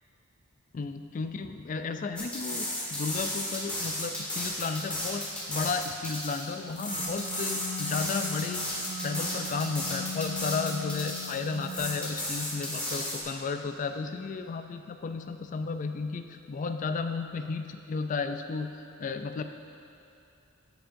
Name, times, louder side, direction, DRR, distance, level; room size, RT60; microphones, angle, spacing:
voice 1, 0.7-8.6 9.0-18.7 19.0-19.4, left 4 dB, 35° left, 7 dB, 0.3 m, -33 dB
sound 1, 2.2-13.2, left 1 dB, 5° left, 1.6 m, -34 dB
sound 2, 6.7-11.8, left 3 dB, 65° left, 0.8 m, -39 dB
12.5 x 6.9 x 2.6 m, 2.6 s
head